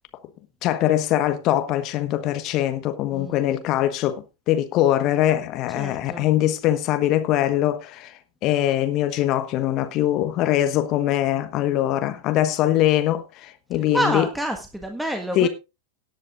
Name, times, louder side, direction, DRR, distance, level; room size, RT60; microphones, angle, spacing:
voice 1, 0.6-8.1 8.4-14.2 15.3-15.5, left 13 dB, 40° left, 1.3 m, -22 dB
voice 2, 5.7-6.3 13.9-15.5, right 1 dB, 5° right, 1.6 m, -27 dB
18.0 x 10.5 x 2.5 m
figure-of-eight pair, 90°, 0 cm